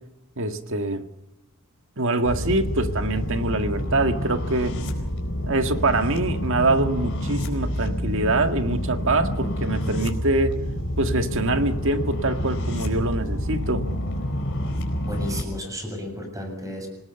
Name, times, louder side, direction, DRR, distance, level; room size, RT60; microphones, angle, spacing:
voice 1, 0.4-1.0 2.0-4.7 5.4-10.6 11.0-13.8, right 2 dB, 60° right, 7 dB, 1.9 m, -24 dB
sound 1, 2.3-15.4, equal, 60° left, 4.5 m, -28 dB
voice 2, 15.1-16.9, left 1 dB, 15° right, 3 dB, 7.5 m, -33 dB
26.0 x 19.0 x 6.9 m, 0.87 s
head